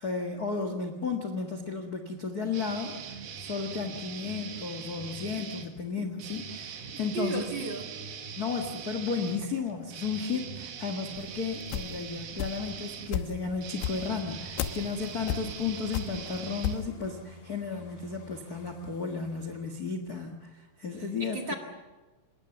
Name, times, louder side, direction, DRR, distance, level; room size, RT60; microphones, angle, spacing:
voice 1, 0.0-7.5 8.4-20.3 20.8-21.5, left 5 dB, 50° left, 6 dB, 1.1 m, -34 dB
sound 1, 2.5-5.7 6.2-17.3, right 6 dB, 75° right, 3.7 m, -42 dB
voice 2, 7.1-7.9 21.0-21.5, right 4 dB, 40° right, 2 dB, 2.1 m, -34 dB
sound 2, 11.2-12.8 13.1-16.9, left 10 dB, 85° left, 3.1 m, -34 dB
sound 3, 13.3-19.8, left 3 dB, 70° left, 5.3 m, -52 dB
26.0 x 21.0 x 7.2 m, 1.2 s
omnidirectional pair, 4.5 m